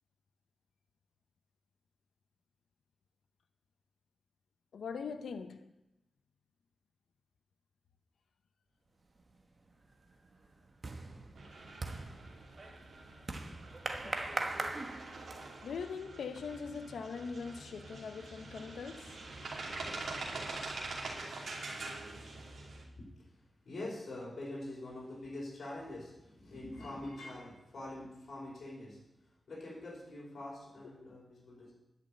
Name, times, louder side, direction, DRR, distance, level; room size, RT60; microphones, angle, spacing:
voice 1, 4.7-5.6 14.0-14.1 15.6-19.1 31.0-31.1, left 5 dB, 85° left, 8 dB, 0.8 m, -41 dB
sound 1, 9.2-9.6 9.9-15.7, right 2 dB, 40° right, 1.3 m, -41 dB
sound 2, 11.4-22.8, right 2 dB, 70° right, 2.6 m, -45 dB
voice 2, 23.0-29.0 29.5-31.7, left 1 dB, 60° left, -5 dB, 5.1 m, -45 dB
11.0 x 6.0 x 8.6 m, 0.92 s
wide cardioid pair, 95°, 0 cm